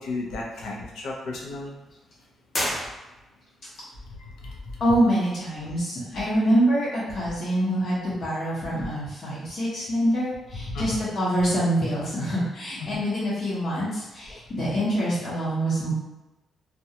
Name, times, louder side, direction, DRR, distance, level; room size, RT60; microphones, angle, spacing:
voice 1, 0.0-1.7 4.1-4.6 10.7-11.0 12.8-13.0, left 3 dB, 85° left, -2 dB, 0.6 m, -34 dB
sound 1, 2.5-3.6, left 1 dB, 20° left, 0.6 m, -30 dB
voice 2, 4.8-15.9, right 1 dB, 50° left, -9 dB, 0.8 m, -25 dB
2.4 x 2.2 x 2.7 m, 1.1 s
cardioid pair, 150°, 0 cm